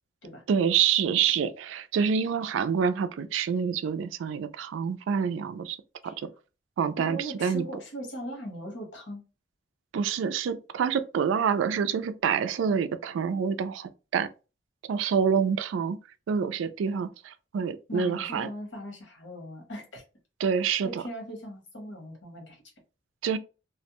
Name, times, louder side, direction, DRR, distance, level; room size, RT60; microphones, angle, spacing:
voice 1, 0.5-5.8 6.0-6.3 6.8-7.7 9.9-14.3 14.9-16.0 16.3-18.5 20.4-21.0 23.2-23.4, right 7 dB, 90° right, 0.3 m, -27 dB
voice 2, 7.0-9.2 17.9-20.0 20.8-22.6, equal, 80° left, 1.1 m, -39 dB
2.4 x 2.1 x 2.8 m
head